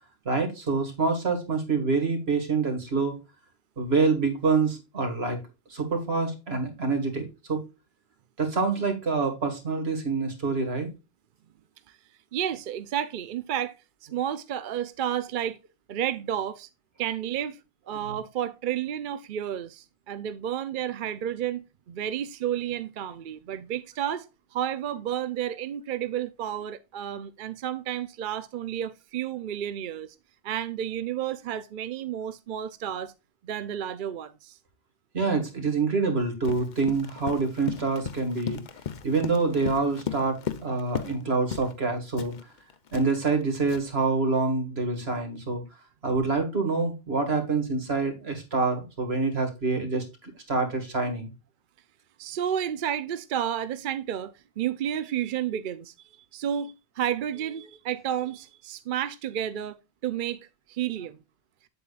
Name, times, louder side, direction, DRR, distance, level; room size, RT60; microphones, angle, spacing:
voice 1, 0.3-3.1 3.8-5.4 5.7-7.6 8.4-10.9 18.1-18.2 35.1-38.6 39.0-42.3 42.9-45.6 46.0-51.3, right 4 dB, 80° right, 2.3 m, -26 dB
voice 2, 12.3-13.7 14.1-15.6 15.9-16.7 17.0-17.6 17.9-24.3 24.5-30.2 30.4-33.1 33.4-34.6 52.2-55.9 56.3-60.4 60.7-61.2, right 10 dB, 60° right, 0.7 m, -31 dB
Run, 36.4-41.2 41.5-41.8 42.2-44.0, left 8 dB, 50° left, 0.8 m, -36 dB
8.2 x 7.9 x 2.4 m
omnidirectional pair, 1.0 m